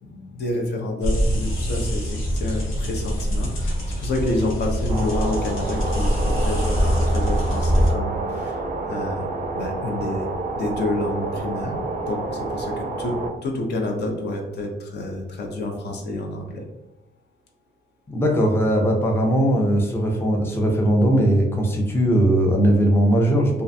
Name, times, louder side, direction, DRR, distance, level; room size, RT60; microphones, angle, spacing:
voice 1, 0.0-8.6 8.9-9.3 9.5-10.3 10.6-11.7 12.1-16.6, left 2 dB, 60° left, 2 dB, 0.6 m, -29 dB
sound 1, 1.0-7.9, equal, 90° left, 0.8 m, -23 dB
sound 2, 4.9-13.3, right 3 dB, 40° right, 0.4 m, -29 dB
voice 2, 18.1-23.6, right 1 dB, 10° left, 0 dB, 0.5 m, -19 dB
2.4 x 2.1 x 2.6 m, 1.0 s
cardioid pair, 90°, 20 cm